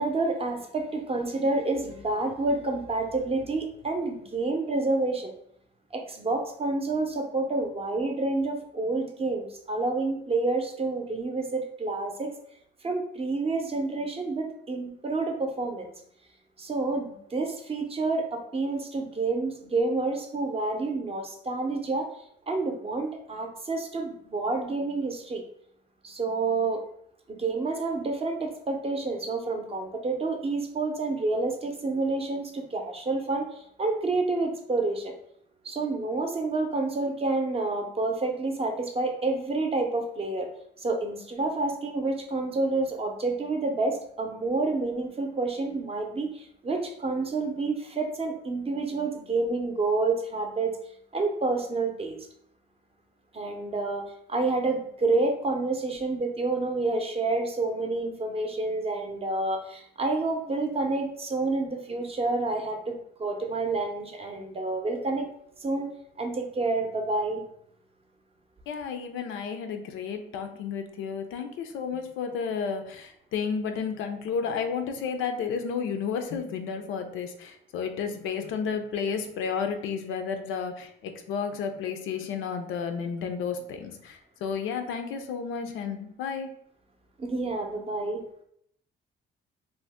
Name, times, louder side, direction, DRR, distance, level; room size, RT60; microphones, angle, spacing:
voice 1, 0.0-5.3 5.9-12.3 12.8-15.9 16.6-22.1 22.5-25.4 26.0-26.8 27.3-35.1 35.6-40.5 40.8-50.8 51.1-52.2 53.3-65.3 65.6-65.9 66.2-67.4 87.2-88.2, right 3 dB, 30° right, 4 dB, 0.5 m, -29 dB
voice 2, 68.7-86.5, left 6 dB, 85° left, 6 dB, 0.4 m, -32 dB
2.6 x 2.1 x 3.3 m, 0.69 s
cardioid pair, 90°, 20 cm